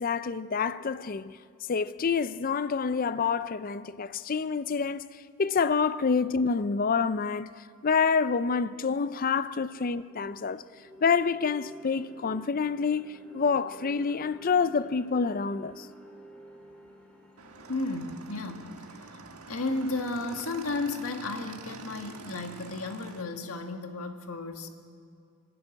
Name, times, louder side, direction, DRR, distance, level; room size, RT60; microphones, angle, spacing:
voice 1, 0.0-1.4 1.7-7.5 7.8-10.6 11.0-15.9, left 5 dB, 40° left, 0.4 m, -27 dB
sound 1, 8.7-8.8 9.3-21.3, equal, 5° left, 3.0 m, -52 dB
Motorcycle / Engine, 17.4-23.2, right 4 dB, 90° right, 1.5 m, -46 dB
voice 2, 17.7-19.2 19.5-24.7, left 2 dB, 80° left, 1.8 m, -33 dB
26.0 x 12.0 x 9.8 m
head